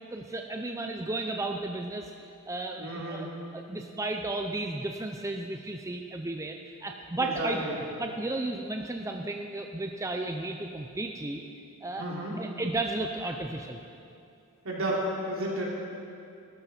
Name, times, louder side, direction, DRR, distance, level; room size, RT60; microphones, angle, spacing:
voice 1, 0.1-2.1 2.5-3.3 3.5-6.6 6.8-7.7 8.0-11.4 11.8-12.0 12.4-13.8, right 2 dB, 15° right, 3 dB, 0.5 m, -33 dB
voice 2, 2.8-3.3 7.2-7.8 12.0-12.4 14.6-15.6, right 1 dB, 65° right, -4 dB, 3.3 m, -32 dB
18.5 x 13.0 x 4.4 m, 2.6 s
head